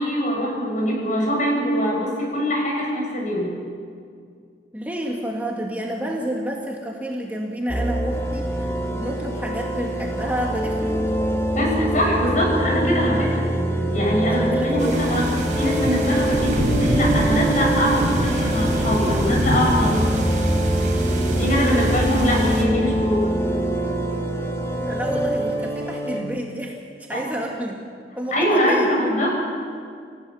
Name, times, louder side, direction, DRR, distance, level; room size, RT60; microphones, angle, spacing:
voice 1, 0.0-3.5 11.5-13.5 13.9-15.2 15.5-20.0 21.3-23.3 27.1-27.2 28.3-29.4, equal, 45° left, -2 dB, 7.1 m, -22 dB
voice 2, 4.7-11.3 14.2-15.0 21.6-21.9 24.8-27.8 28.2-28.9, equal, 10° right, -1 dB, 1.9 m, -29 dB
sound 1, 7.7-26.2, right 1 dB, 15° left, 2.1 m, -24 dB
sound 2, 14.8-22.6, right 1 dB, 45° right, 4.3 m, -25 dB
28.5 x 16.0 x 7.1 m, 2.2 s
head